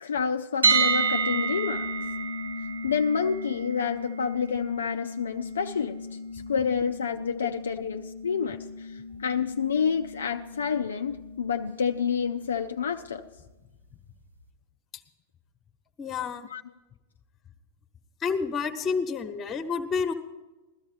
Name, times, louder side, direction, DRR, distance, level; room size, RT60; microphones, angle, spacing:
voice 1, 0.0-1.9 2.8-6.0 6.5-13.2 16.5-16.6, left 6 dB, 70° left, 7 dB, 0.5 m, -28 dB
sound 1, 0.6-12.5, right 3 dB, 85° right, 2.8 m, -31 dB
voice 2, 16.0-16.5 18.2-20.1, left 5 dB, 25° left, 9 dB, 1.2 m, -29 dB
16.5 x 13.0 x 5.0 m, 1.1 s
figure-of-eight pair, 90°, 0 cm